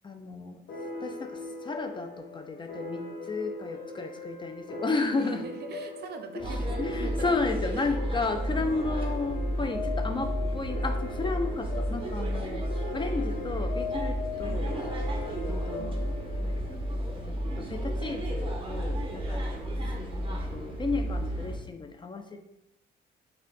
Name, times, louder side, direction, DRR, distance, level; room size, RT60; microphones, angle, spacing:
voice 1, 0.0-0.6 1.0-5.5 6.8-12.7 12.9-14.7 15.5-16.0 16.4-16.7 17.2-19.4 20.3-22.4, left 3 dB, 25° left, 6 dB, 0.3 m, -33 dB
sound 1, 0.7-17.8, left 3 dB, 65° left, 1.1 m, -40 dB
voice 2, 5.2-7.4 7.7-9.1 14.5-14.7 15.8-16.0 19.8-20.1, right 5 dB, 55° right, 7 dB, 0.4 m, -43 dB
sound 2, 6.4-21.6, equal, 25° right, 0.8 m, -32 dB
5.1 x 2.2 x 2.5 m, 0.86 s
cardioid pair, 90°, 20 cm